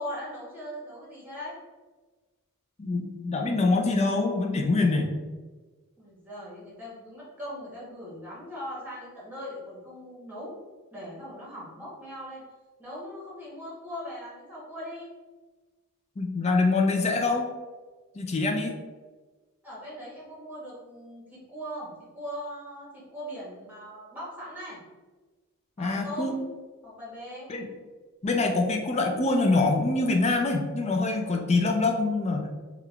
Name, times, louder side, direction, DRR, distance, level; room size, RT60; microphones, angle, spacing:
voice 1, 0.0-1.6 6.0-10.5 10.9-12.4 12.8-15.1 19.6-24.8 25.8-26.4 26.8-27.5, equal, 10° right, -7 dB, 1.3 m, -40 dB
voice 2, 2.8-5.1 16.2-17.5 18.2-18.7 25.8-26.3 27.5-27.7 28.2-32.5, left 3 dB, 30° left, 3 dB, 0.4 m, -25 dB
3.6 x 2.4 x 3.2 m, 1.3 s
head